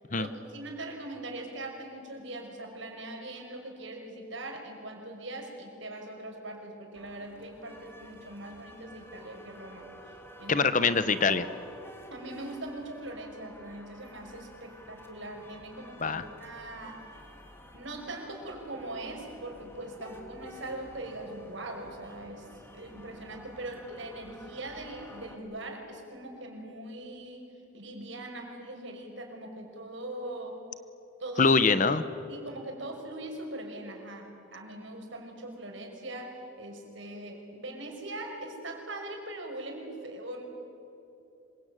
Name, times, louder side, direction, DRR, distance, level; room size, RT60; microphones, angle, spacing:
voice 1, 0.1-9.9 10.4-10.7 12.1-17.1 17.7-30.6 31.2-31.5 31.8-32.0 32.3-40.4, right 1 dB, 65° right, 2 dB, 5.7 m, -41 dB
sound 1, 6.9-25.4, equal, 10° left, 2.4 m, -51 dB
voice 2, 10.5-11.5 16.0-16.2 31.4-32.0, left 4 dB, 40° left, 13 dB, 1.0 m, -23 dB
26.5 x 24.0 x 9.2 m, 2.9 s
head